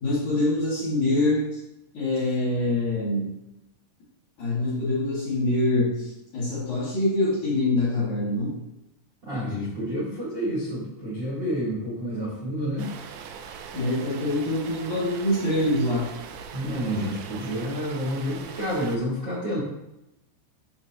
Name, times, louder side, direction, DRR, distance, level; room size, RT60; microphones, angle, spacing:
voice 1, 0.0-1.4 1.9-3.3 4.4-8.5 13.7-16.1, left 1 dB, 50° left, -7 dB, 2.7 m, -25 dB
voice 2, 9.2-12.9 16.5-19.6, equal, 40° right, -8 dB, 1.6 m, -29 dB
sound 1, 12.8-19.0, right 7 dB, 85° right, 2.6 m, -41 dB
7.5 x 7.2 x 3.0 m, 0.89 s
omnidirectional pair, 5.9 m